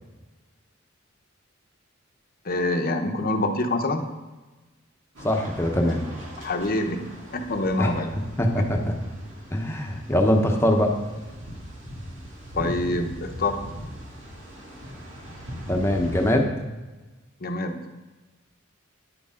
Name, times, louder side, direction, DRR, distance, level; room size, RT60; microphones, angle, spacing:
voice 1, 2.4-4.0 6.4-8.1 8.6-8.7 12.5-13.6 17.4-17.8, left 2 dB, 45° left, 5 dB, 0.9 m, -26 dB
sound 1, 5.1-16.3, equal, 65° right, 2.4 m, -39 dB
voice 2, 5.2-6.1 7.8-7.9 8.4-9.0 9.5-10.9 15.7-16.5, left 1 dB, 15° left, 2 dB, 1.0 m, -22 dB
10.0 x 8.5 x 3.8 m, 1.2 s
head